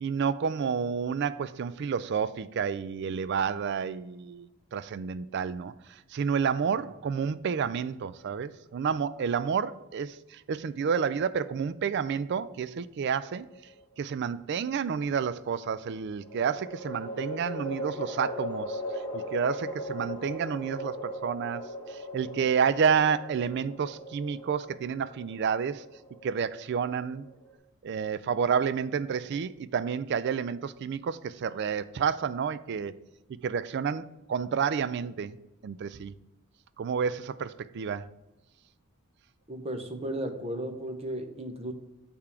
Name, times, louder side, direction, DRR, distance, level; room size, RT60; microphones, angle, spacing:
voice 1, 0.0-13.5 14.0-25.9 26.2-27.3 27.8-32.9 33.3-35.4 35.6-36.1 36.8-38.1, right 6 dB, 50° right, 0.3 m, -30 dB
sound 1, 13.1-14.0 16.2-27.5, equal, 20° left, 1.2 m, -39 dB
voice 2, 39.5-41.7, right 1 dB, 25° right, 0.7 m, -35 dB
6.7 x 3.6 x 5.6 m
head